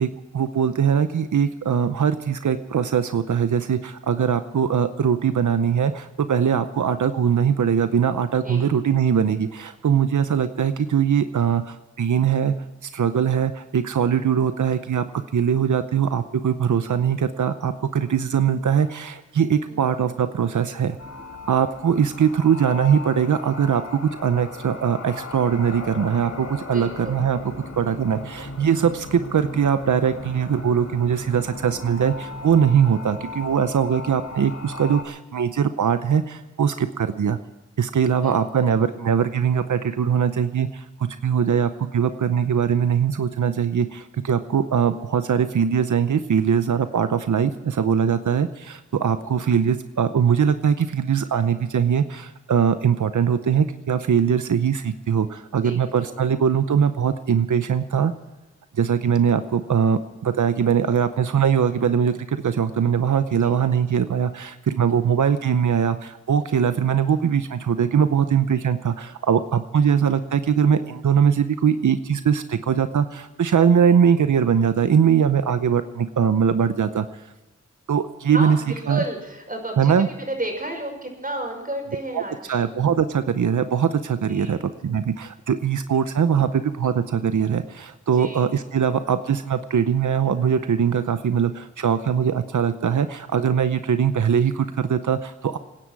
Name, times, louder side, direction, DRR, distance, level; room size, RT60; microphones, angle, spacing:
voice 1, 0.0-12.5 12.8-15.1 15.3-21.0 21.5-37.4 37.8-58.1 58.7-77.1 77.9-78.6 78.9-79.0 79.8-80.1 82.1-82.2 82.5-95.6, right 7 dB, 90° right, 10 dB, 0.7 m, -21 dB
voice 2, 19.5-19.9 26.7-27.2 38.2-38.7 49.2-49.5 55.6-56.1 63.4-63.6 69.8-70.0 78.3-82.6 84.3-84.6 85.9-86.0 88.1-88.5, right 1 dB, 30° right, 2 dB, 5.8 m, -33 dB
sound 1, 21.0-35.0, left 3 dB, 60° left, 2.1 m, -37 dB
26.0 x 10.0 x 4.7 m, 1.1 s
wide cardioid pair, 55°, 29 cm